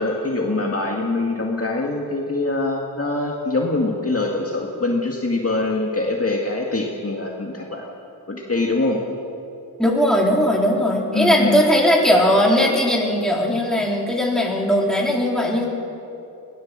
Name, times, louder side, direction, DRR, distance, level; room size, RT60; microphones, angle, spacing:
voice 1, 0.0-7.9 8.3-9.0 11.1-11.7, left 2 dB, 35° left, -1 dB, 2.0 m, -23 dB
voice 2, 9.8-15.7, equal, ahead, -2 dB, 3.8 m, -18 dB
20.0 x 17.5 x 7.5 m, 2.8 s
wide cardioid pair, 85°, 42 cm